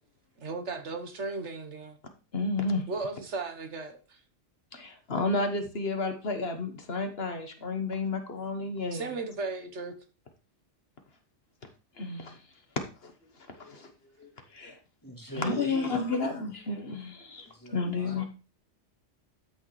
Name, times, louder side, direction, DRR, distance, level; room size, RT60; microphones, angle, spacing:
voice 1, 0.4-2.0 2.9-4.2 8.9-9.9, right 3 dB, 70° right, 7 dB, 1.5 m, -36 dB
voice 2, 2.3-2.8 4.7-9.1 12.0-12.4 13.0-13.1 13.5-13.9 14.2-14.7 15.4-18.2, left 3 dB, 55° left, 6 dB, 1.4 m, -31 dB
voice 3, 15.0-16.3 17.5-18.2, equal, 15° left, 0 dB, 2.0 m, -41 dB
13.0 x 6.4 x 3.2 m, 0.34 s
omnidirectional pair, 1.2 m